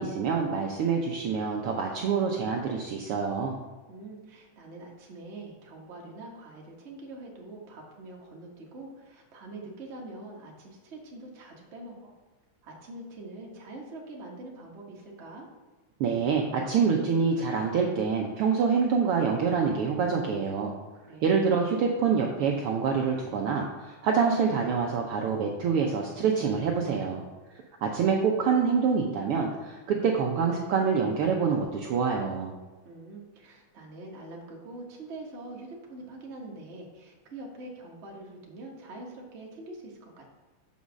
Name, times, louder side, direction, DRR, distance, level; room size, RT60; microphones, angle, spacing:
voice 1, 0.0-3.6 16.0-20.7 21.2-27.2 27.8-32.5, right 5 dB, 85° right, 1 dB, 1.2 m, -26 dB
voice 2, 3.9-12.1 12.6-15.5 20.9-21.4 32.8-40.3, right 2 dB, 45° right, -1 dB, 0.9 m, -44 dB
7.0 x 5.5 x 6.2 m, 1.3 s
omnidirectional pair, 3.5 m